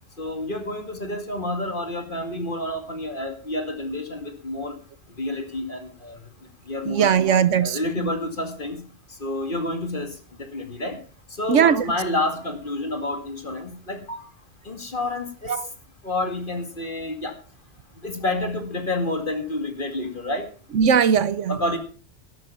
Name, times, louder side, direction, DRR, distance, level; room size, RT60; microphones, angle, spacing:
voice 1, 0.2-4.7 5.2-6.2 6.7-7.1 7.6-8.8 9.2-10.1 10.4-11.0 11.4-14.3 14.7-15.5 16.0-17.3 18.0-20.5 21.5-21.8, left 2 dB, 45° left, 6 dB, 2.5 m, -29 dB
voice 2, 6.9-8.1 11.5-11.8 15.5-15.7 20.7-21.6, right 7 dB, 75° right, 15 dB, 1.2 m, -19 dB
12.5 x 11.5 x 5.7 m, 0.40 s
omnidirectional pair, 1.3 m